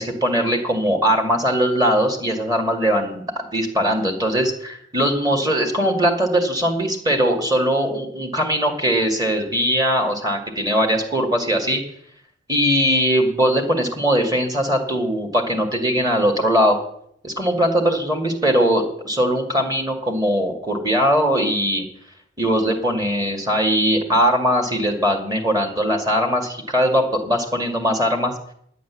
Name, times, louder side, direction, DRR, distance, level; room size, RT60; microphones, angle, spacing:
voice 1, 0.0-11.8 12.5-16.8 17.2-21.8 22.4-28.3, equal, 20° right, 4 dB, 2.2 m, -20 dB
10.5 x 8.4 x 9.8 m, 0.66 s
head